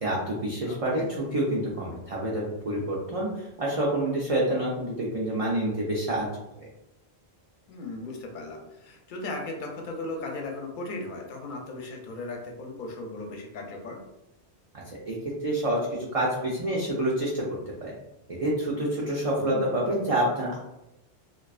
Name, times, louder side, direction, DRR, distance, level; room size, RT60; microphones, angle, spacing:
voice 1, 0.0-6.3 6.6-6.7 14.9-15.2 15.4-17.5 17.8-17.9 18.3-20.6, right 1 dB, 65° right, -5 dB, 0.3 m, -27 dB
voice 2, 0.7-1.1 7.7-14.0 19.4-19.6, left 2 dB, 60° left, 1 dB, 0.6 m, -37 dB
2.4 x 2.3 x 2.3 m, 0.91 s
omnidirectional pair, 1.1 m